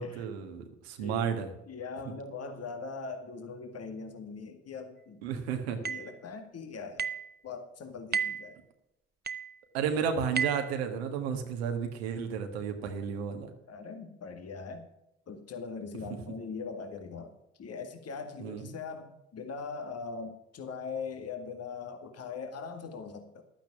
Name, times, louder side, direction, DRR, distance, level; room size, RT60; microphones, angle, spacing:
voice 1, 0.0-1.5 5.2-5.8 9.7-13.5 18.4-18.7, right 7 dB, 85° right, 6 dB, 1.4 m, -32 dB
voice 2, 1.7-5.2 5.8-7.1 7.4-8.6 13.7-14.9 15.3-23.4, left 5 dB, 50° left, 7 dB, 1.9 m, -41 dB
sound 1, 5.8-6.1 7.0-7.3 8.1-8.5 9.3-9.5 10.3-10.7, right 6 dB, 30° right, 0.9 m, -32 dB
12.0 x 9.1 x 6.0 m, 0.87 s
hypercardioid pair, 40°, 31 cm